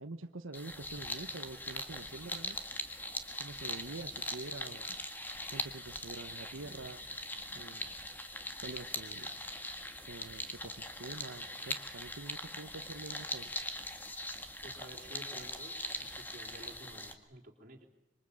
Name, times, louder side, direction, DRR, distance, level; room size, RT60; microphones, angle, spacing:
voice 1, 0.0-2.6 3.4-4.9 5.5-7.0 7.5-7.9 8.6-9.3 10.1-13.5, right 2 dB, 90° right, 6 dB, 1.1 m, -46 dB
sound 1, 0.5-17.1, left 1 dB, 10° left, 1.6 m, -41 dB
voice 2, 14.6-15.8 16.1-17.9, right 1 dB, 45° right, 1 dB, 3.9 m, -52 dB
26.0 x 23.0 x 8.6 m, 0.96 s
head